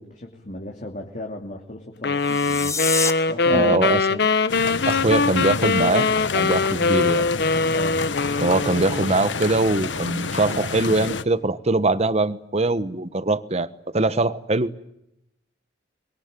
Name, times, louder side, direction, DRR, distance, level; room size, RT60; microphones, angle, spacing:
voice 1, 0.0-2.8 3.3-3.9 7.7-8.1, left 1 dB, 45° left, 2 dB, 2.9 m, -35 dB
sound 1, 2.0-9.2, left 4 dB, 65° left, 1.0 m, -22 dB
sound 2, 2.2-3.1, left 4 dB, 15° left, 1.5 m, -26 dB
voice 2, 3.5-4.2 4.8-6.1 6.3-7.3 8.4-14.7, right 2 dB, 35° right, 14 dB, 1.3 m, -22 dB
sound 3, 4.5-11.2, left 4 dB, 85° left, 1.2 m, -29 dB
25.5 x 22.5 x 9.1 m, 0.81 s
head